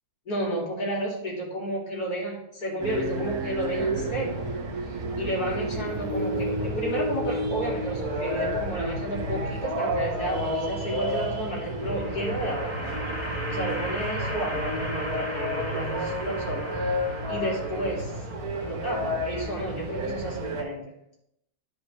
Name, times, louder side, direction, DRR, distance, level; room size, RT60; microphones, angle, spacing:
voice 1, 0.3-4.5 4.9-12.7 13.5-16.9 17.3-18.2 18.6-20.8, right 1 dB, 65° left, -4 dB, 3.0 m, -32 dB
sound 1, 2.8-20.6, equal, 55° right, 2.2 m, -31 dB
sound 2, 11.4-18.5, equal, 20° right, 3.2 m, -35 dB
13.0 x 5.2 x 3.2 m, 0.81 s
omnidirectional pair, 1.8 m